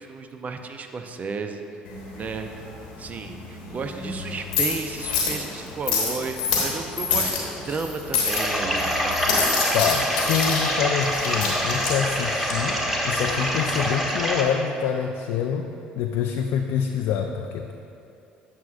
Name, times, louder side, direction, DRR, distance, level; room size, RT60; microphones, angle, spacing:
voice 1, 0.0-1.6 2.1-2.5 3.0-9.2, right 4 dB, 40° right, 6 dB, 0.6 m, -33 dB
sound 1, 1.8-13.9, left 4 dB, 90° left, 1.1 m, -28 dB
sound 2, 8.3-14.4, equal, 5° right, 1.1 m, -26 dB
voice 2, 9.7-17.7, left 7 dB, 70° left, 3 dB, 0.3 m, -26 dB
9.2 x 6.4 x 2.4 m, 2.6 s
hypercardioid pair, 60°, 4 cm